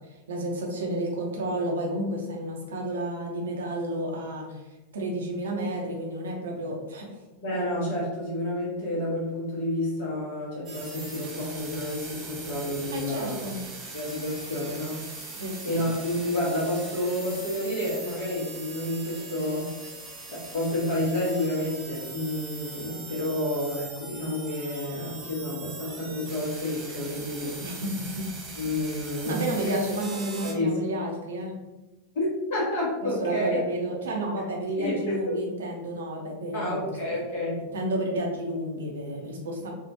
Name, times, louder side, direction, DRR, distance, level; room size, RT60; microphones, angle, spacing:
voice 1, 0.3-4.6 4.9-7.1 12.9-13.6 15.3-15.9 27.6-28.3 29.2-31.5 33.0-36.8 37.6-39.7, right 1 dB, 65° right, 0 dB, 0.7 m, -31 dB
voice 2, 7.4-13.4 13.9-15.0 15.6-19.7 20.3-27.6 28.6-29.7 30.4-30.8 32.1-33.6 34.8-35.4 36.5-37.6, left 1 dB, 50° left, -4 dB, 1.3 m, -30 dB
sound 1, 10.7-30.5, right 3 dB, 30° right, 0.6 m, -41 dB
3.5 x 2.4 x 2.7 m, 1.1 s
figure-of-eight pair, 90°, 0 cm